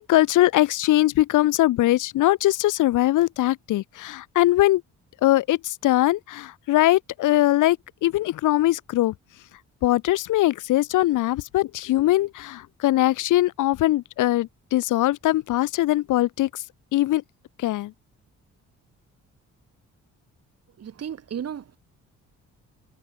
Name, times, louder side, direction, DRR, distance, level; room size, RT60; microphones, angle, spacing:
voice 1, 0.0-4.8 5.2-9.1 9.8-16.6 16.9-17.2 17.6-17.9, left 15 dB, 85° left, 3.0 m, -21 dB
voice 2, 20.8-21.8, right 8 dB, 55° right, 3.0 m, -34 dB
cardioid pair, 90°, 30 cm